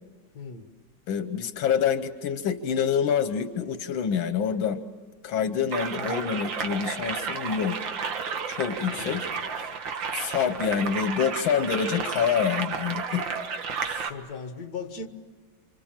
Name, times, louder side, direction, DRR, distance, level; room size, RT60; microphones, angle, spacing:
voice 1, 0.3-0.7 5.9-6.3 8.9-9.4 14.0-15.1, left 4 dB, 55° left, 2.1 m, -38 dB
voice 2, 1.1-4.8 5.2-7.8 8.5-9.3 9.6-9.7 10.1-13.2 13.8-14.1, left 7 dB, 85° left, 1.7 m, -27 dB
sound 1, 5.7-14.1, right 5 dB, 75° right, 2.2 m, -32 dB
29.0 x 26.0 x 7.4 m
omnidirectional pair, 2.1 m